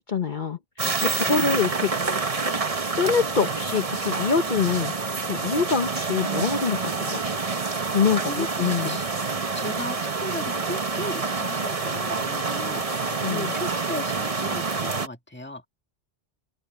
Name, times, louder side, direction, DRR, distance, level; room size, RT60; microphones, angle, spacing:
voice 1, 0.0-2.3 3.0-4.9 5.2-7.2 7.9-9.0 13.2-13.5, left 6 dB, 45° left, 1.1 m, -25 dB
sound 1, 0.8-15.1, right 4 dB, 30° right, 1.1 m, -27 dB
voice 2, 1.2-1.6 8.2-9.0 9.5-15.7, left 1 dB, 10° left, 1.8 m, -36 dB
omnidirectional pair, 1.2 m